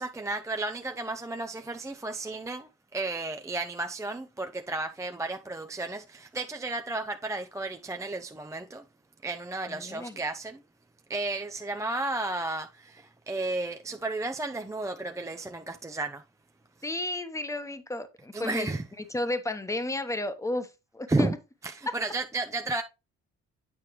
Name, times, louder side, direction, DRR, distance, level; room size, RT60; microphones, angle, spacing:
voice 1, 0.0-8.8 9.2-10.6 11.1-16.2 18.3-18.8 21.1-21.3 21.6-22.8, right 2 dB, 10° right, 0.5 m, -33 dB
voice 2, 9.7-10.2 16.8-18.7 19.0-21.4 21.9-22.0, left 2 dB, 10° left, 1.0 m, -33 dB
8.7 x 4.6 x 3.1 m
cardioid pair, 90°, 30 cm